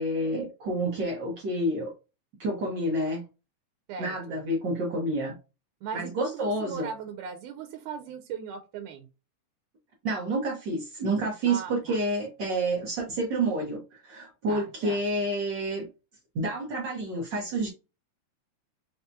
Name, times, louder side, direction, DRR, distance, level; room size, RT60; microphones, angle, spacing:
voice 1, 0.0-1.9 2.4-3.2 4.0-5.4 5.9-6.9 10.0-15.9 16.3-17.7, right 1 dB, 60° right, 1.2 m, -29 dB
voice 2, 5.8-9.1 11.5-12.0 14.5-15.0, right 7 dB, 85° right, 2.1 m, -38 dB
5.6 x 2.8 x 2.3 m
omnidirectional pair, 3.5 m